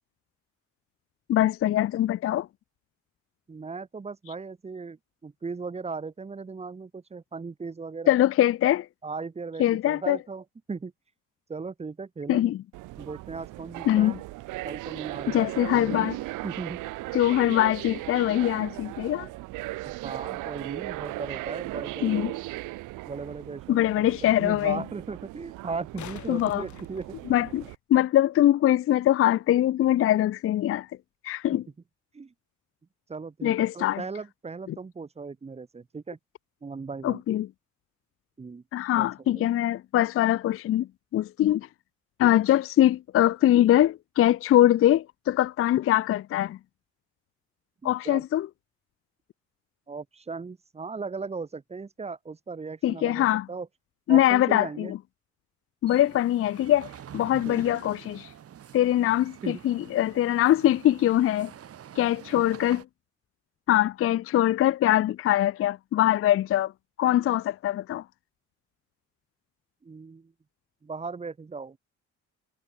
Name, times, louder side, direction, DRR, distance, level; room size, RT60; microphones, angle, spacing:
voice 1, 1.3-2.5 8.1-8.9 9.6-10.2 12.3-12.6 13.9-14.2 15.3-16.2 17.1-19.3 22.0-22.3 23.7-24.8 26.3-26.6 27.3-27.6 27.9-30.9 31.2-31.6 33.4-34.0 37.0-37.5 38.7-41.7 42.2-46.6 47.8-48.5 52.8-53.5 54.1-55.0 55.8-58.3 58.7-61.5 62.0-62.8 63.7-66.7 67.0-68.0, left 13 dB, 50° left, 0.4 m, -23 dB
voice 2, 3.5-5.0 5.2-8.1 9.0-10.9 11.5-12.4 13.0-14.2 14.6-16.1 16.4-17.0 19.8-22.3 23.1-27.0 32.1-32.3 33.1-36.2 36.6-37.2 38.4-38.6 39.0-39.1 39.3-39.5 47.8-48.2 49.9-53.7 54.1-54.9 57.5-57.7 59.4-59.6 62.3-62.4 69.8-70.3 70.8-71.8, right 4 dB, 20° right, 0.9 m, -37 dB
sound 1, 12.7-27.7, right 19 dB, 85° right, 0.6 m, -37 dB
sound 2, 22.8-22.9 25.6-27.8 30.6-30.7, left 11 dB, 70° left, 3.4 m, -46 dB
sound 3, 55.9-62.8, right 9 dB, 50° right, 1.2 m, -46 dB
cardioid pair, 90°, 30 cm